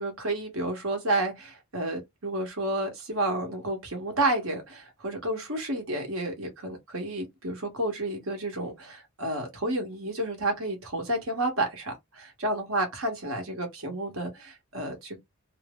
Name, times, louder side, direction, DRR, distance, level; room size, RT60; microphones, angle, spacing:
voice 1, 0.0-15.2, right 1 dB, 85° right, 1.4 m, -31 dB
3.1 x 2.0 x 3.5 m
head